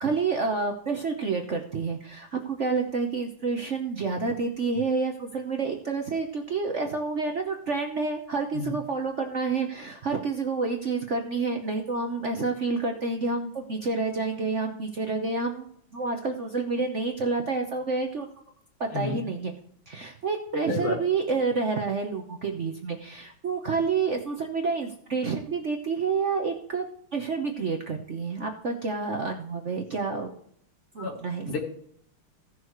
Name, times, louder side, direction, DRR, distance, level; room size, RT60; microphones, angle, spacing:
voice 1, 0.0-15.7 15.9-18.3 18.8-19.5 19.9-26.9 27.1-30.3 30.9-31.6, right 4 dB, 50° right, 3 dB, 0.8 m, -29 dB
voice 2, 8.5-8.7 18.9-19.2 20.7-20.9 31.0-31.2 31.4-31.6, left 4 dB, 90° left, 1 dB, 3.0 m, -30 dB
16.5 x 6.5 x 3.1 m, 0.66 s
omnidirectional pair, 2.3 m